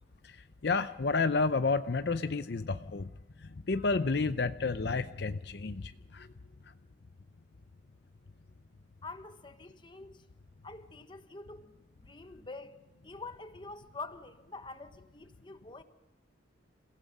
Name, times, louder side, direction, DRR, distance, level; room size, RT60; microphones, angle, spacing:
voice 1, 0.2-3.1 3.4-6.3, left 4 dB, 60° left, 0.6 m, -31 dB
voice 2, 9.0-10.2 10.6-11.7 12.0-15.8, left 3 dB, 25° left, 1.2 m, -46 dB
30.0 x 16.5 x 5.4 m
head